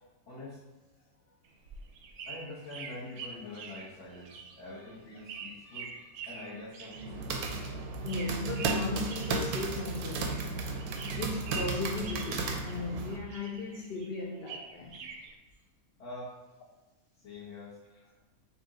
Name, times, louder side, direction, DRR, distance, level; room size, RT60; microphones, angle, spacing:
voice 1, 0.3-0.6 2.3-5.9 6.3-7.3 16.0-16.4 17.2-17.8, left 2 dB, 55° left, 1.6 m, -45 dB
sound 1, 1.4-10.5 10.8-13.0 13.3-15.3, right 6 dB, 65° right, 0.8 m, -45 dB
voice 2, 5.6-6.1 7.6-10.6 11.1-15.0, left 3 dB, 75° left, 0.5 m, -37 dB
sound 2, 6.9-13.2, right 3 dB, 85° right, 1.1 m, -34 dB
4.3 x 2.8 x 3.7 m
omnidirectional pair, 1.5 m